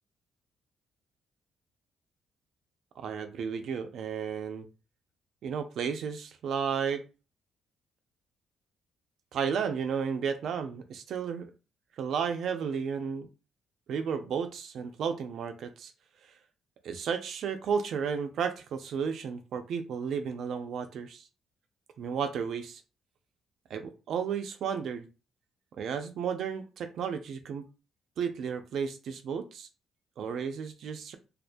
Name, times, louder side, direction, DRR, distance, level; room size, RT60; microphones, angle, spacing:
voice 1, 3.0-4.7 5.4-7.0 9.3-11.5 12.0-13.3 13.9-15.9 16.8-21.3 22.0-22.8 23.7-25.1 25.8-27.6 28.2-29.7 30.2-31.2, right 6 dB, 70° right, 8 dB, 0.3 m, -33 dB
2.3 x 2.1 x 2.5 m, 0.32 s
cardioid pair, 90°, 0 cm